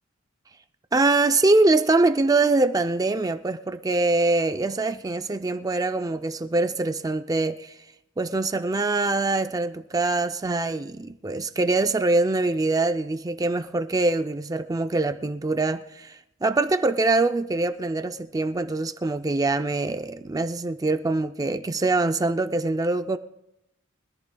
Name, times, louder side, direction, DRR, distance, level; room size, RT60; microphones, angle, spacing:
voice 1, 0.9-7.8 8.2-23.2, right 2 dB, 15° right, 0.4 m, -24 dB
24.0 x 14.0 x 2.3 m
head